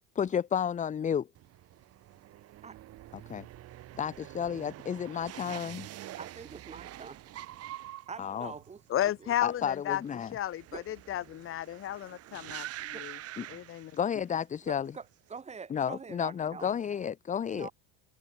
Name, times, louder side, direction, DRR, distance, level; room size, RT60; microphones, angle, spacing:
voice 1, 0.1-1.3 3.3-3.5 4.0-5.9 8.2-8.5 9.4-10.3 13.4-13.5 14.0-14.9 15.7-17.7, left 8 dB, 25° left, 1.0 m, -32 dB
sound 1, 1.3-14.4 14.7-15.3, right 14 dB, 50° right, 4.2 m, -46 dB
voice 2, 6.2-7.2 8.1-9.3 10.7-10.8 12.9-13.1 14.6-16.8 17.5-17.7, right 5 dB, 20° right, 4.8 m, -45 dB
voice 3, 8.9-10.0 10.3-13.2 13.5-13.9, left 12 dB, 40° left, 2.2 m, -33 dB
cardioid pair, 145°, 31 cm